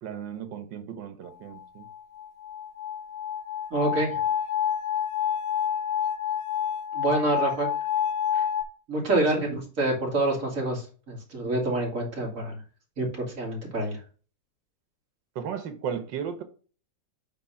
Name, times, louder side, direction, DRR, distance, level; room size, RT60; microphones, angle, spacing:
voice 1, 0.0-1.9 15.4-16.4, right 8 dB, 85° right, 1.8 m, -35 dB
sound 1, 1.5-8.6, left 9 dB, 85° left, 1.7 m, -28 dB
voice 2, 3.7-4.2 6.9-7.7 8.3-8.4 8.9-12.6 13.0-14.0, right 2 dB, 45° right, 2.7 m, -27 dB
8.4 x 3.2 x 5.6 m
omnidirectional pair, 1.9 m